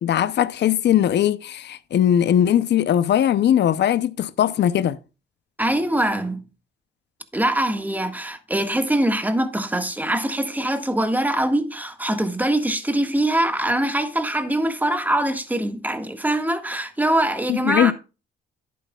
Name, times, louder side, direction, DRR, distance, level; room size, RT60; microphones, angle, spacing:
voice 1, 0.0-5.0 17.5-17.9, left 10 dB, 60° left, 0.7 m, -19 dB
voice 2, 5.6-6.4 7.3-17.9, right 1 dB, 10° right, 1.7 m, -23 dB
11.0 x 9.4 x 2.4 m
cardioid pair, 90°, 20 cm